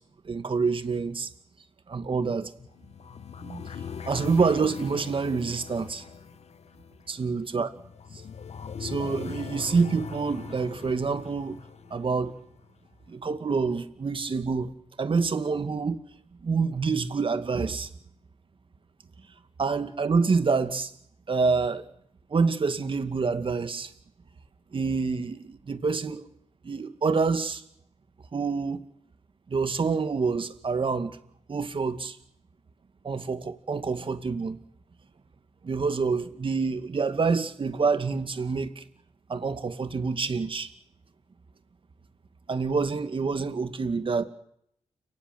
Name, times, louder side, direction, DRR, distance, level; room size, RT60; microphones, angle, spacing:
voice 1, 0.2-1.3 1.9-2.5 3.4-3.7 4.1-6.0 7.1-7.7 8.1-8.2 8.8-11.6 11.9-12.4 13.1-16.0 16.4-17.9 19.6-20.9 21.3-21.9 22.3-23.9 24.7-26.3 26.6-27.6 28.3-28.8 29.5-31.2 31.5-32.2 33.0-34.6 35.6-38.8 39.3-40.7 42.5-44.2, right 4 dB, 45° right, 2.4 m, -27 dB
sound 1, 2.6-12.7, left 7 dB, 65° left, 1.2 m, -41 dB
30.0 x 18.5 x 8.2 m
cardioid pair, 90°, 12 cm